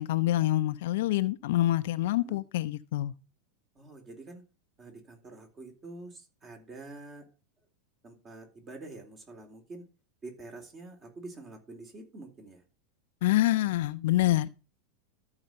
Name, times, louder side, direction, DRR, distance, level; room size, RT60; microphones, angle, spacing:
voice 1, 0.0-3.1 13.2-14.5, left 15 dB, 65° left, 0.7 m, -26 dB
voice 2, 3.7-4.4 4.8-7.3 8.0-9.9 10.2-12.6, right 2 dB, 30° right, 4.3 m, -46 dB
13.5 x 4.9 x 5.5 m
hypercardioid pair, 95°, 0 cm